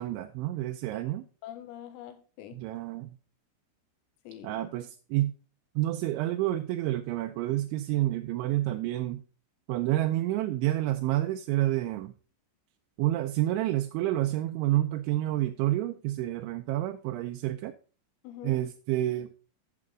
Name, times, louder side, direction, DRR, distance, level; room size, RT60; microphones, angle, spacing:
voice 1, 0.0-1.3 2.5-3.2 4.4-5.3 5.8-9.2 9.7-12.1 13.0-17.7 18.4-19.3, right 15 dB, 85° right, 2.7 m, -29 dB
voice 2, 1.4-2.6 4.3-4.7 18.2-18.6, left 11 dB, 90° left, 3.9 m, -45 dB
12.0 x 7.5 x 3.6 m
omnidirectional pair, 6.0 m